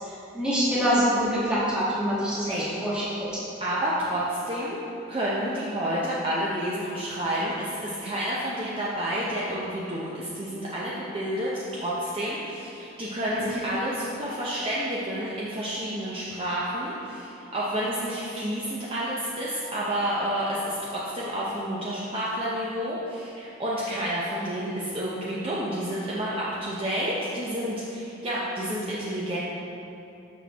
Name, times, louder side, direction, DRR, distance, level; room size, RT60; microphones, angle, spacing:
voice 1, 0.0-3.4 13.3-13.4, equal, 5° right, -10 dB, 1.5 m, -26 dB
voice 2, 3.6-4.8 5.1-29.4, equal, 30° right, -7 dB, 0.6 m, -30 dB
6.2 x 5.9 x 3.5 m, 2.9 s
head